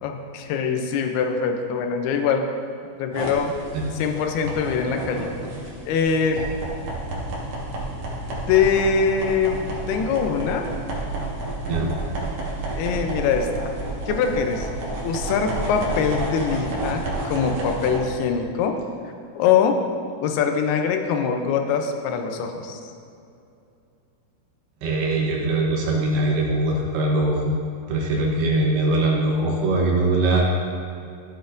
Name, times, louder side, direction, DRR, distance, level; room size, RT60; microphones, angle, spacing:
voice 1, 0.0-2.5 3.0-3.5 3.9-5.3 5.9-6.4 8.5-9.6 9.9-10.7 12.8-13.6 14.1-14.7 15.0-18.8 19.4-19.8 20.2-22.8, left 6 dB, 80° left, 5 dB, 2.5 m, -23 dB
sound 1, 3.1-18.0, right 2 dB, 55° right, 1.9 m, -30 dB
voice 2, 24.8-27.6 27.9-30.4, right 2 dB, 75° right, -2 dB, 2.9 m, -22 dB
13.5 x 8.1 x 2.6 m, 2.6 s
omnidirectional pair, 4.8 m